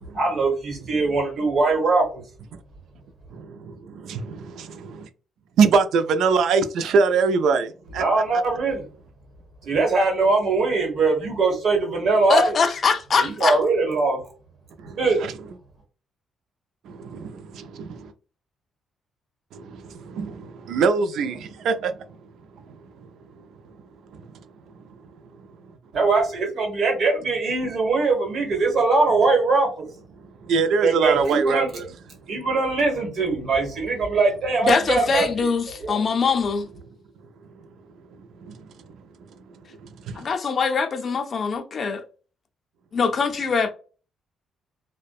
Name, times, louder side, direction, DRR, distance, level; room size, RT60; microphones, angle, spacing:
voice 1, 0.1-2.2 8.0-8.8 9.6-12.5 13.2-14.2 15.0-15.2 25.9-29.9 30.8-31.7 32.3-35.3 35.8-36.0, right 3 dB, 60° right, 1.1 m, -21 dB
voice 2, 3.3-3.8 4.8-5.1 5.6-8.0 14.8-15.3 16.9-18.1 19.5-21.9 24.1-24.2 30.4-31.9 38.4-38.6 40.1-40.3, right 5 dB, 75° right, 0.3 m, -23 dB
voice 3, 12.3-13.6 34.6-36.7 40.2-42.0 42.9-43.7, left 5 dB, 50° left, 0.4 m, -22 dB
2.5 x 2.1 x 2.3 m
cardioid pair, 90°, 0 cm